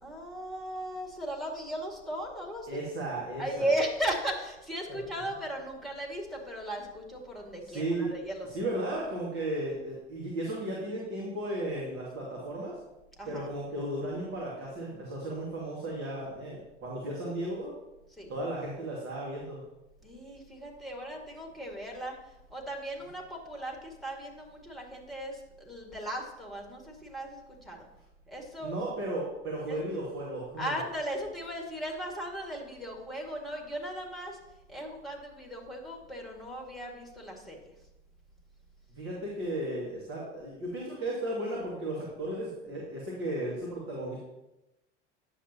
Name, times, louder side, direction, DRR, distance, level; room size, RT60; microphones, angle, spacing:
voice 1, 0.0-2.8 3.4-8.5 13.2-13.5 18.1-18.3 20.0-22.2 22.5-27.9 28.3-28.8 29.7-29.8 30.6-34.4 34.7-37.6 42.7-42.8, right 1 dB, ahead, 1 dB, 2.1 m, -37 dB
voice 2, 2.7-3.7 4.9-5.0 7.7-8.1 8.5-12.8 13.3-17.7 18.3-19.6 28.6-30.7 38.9-44.2, right 1 dB, 40° right, -4 dB, 2.3 m, -35 dB
9.9 x 7.3 x 2.9 m, 0.94 s
figure-of-eight pair, 75°, 36 cm